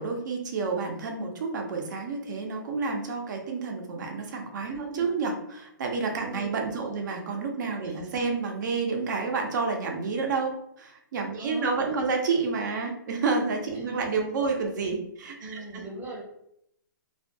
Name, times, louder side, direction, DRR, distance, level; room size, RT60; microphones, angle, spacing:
voice 1, 0.0-15.8, right 4 dB, 65° right, 3 dB, 0.6 m, -29 dB
voice 2, 4.7-5.1 6.2-7.0 7.8-8.3 11.4-12.1 13.7-14.2 15.4-16.2, right 2 dB, 15° right, -2 dB, 0.7 m, -41 dB
2.4 x 2.2 x 2.6 m, 0.77 s
hypercardioid pair, 140°, 11 cm